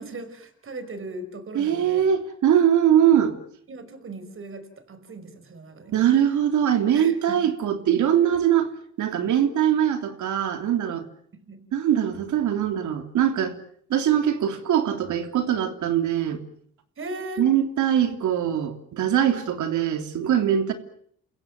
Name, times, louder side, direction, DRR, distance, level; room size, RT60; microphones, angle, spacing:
voice 1, 0.0-2.0 3.7-6.1 6.9-7.5 11.3-11.6 17.0-17.5 18.0-18.1, right 2 dB, 45° right, 5.2 m, -38 dB
voice 2, 1.5-3.3 5.9-8.7 9.0-11.0 11.7-13.6 13.9-16.4 17.4-20.7, right 10 dB, 75° right, 3.3 m, -22 dB
29.5 x 16.0 x 9.4 m
cardioid pair, 90°, 30 cm